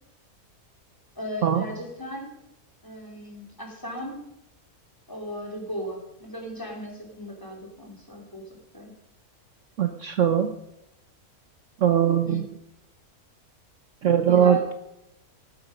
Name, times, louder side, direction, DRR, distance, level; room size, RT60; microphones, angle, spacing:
voice 1, 1.1-2.4 2.8-4.2 5.1-8.4 8.7-8.9 12.3-12.5 14.3-14.6, equal, 15° left, 0 dB, 3.3 m, -36 dB
voice 2, 9.8-10.5 11.8-12.4 14.0-14.7, right 9 dB, 60° right, 8 dB, 1.1 m, -21 dB
19.0 x 8.0 x 5.2 m, 0.86 s
omnidirectional pair, 1.6 m